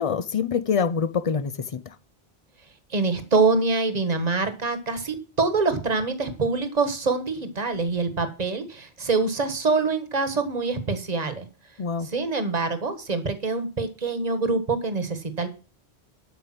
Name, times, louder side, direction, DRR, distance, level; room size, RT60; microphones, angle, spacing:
voice 1, 0.0-1.9 11.8-12.1, left 6 dB, 40° left, 0.6 m, -25 dB
voice 2, 2.9-11.5 12.1-15.5, right 3 dB, 40° right, 1.5 m, -25 dB
12.0 x 5.1 x 7.6 m
omnidirectional pair, 1.1 m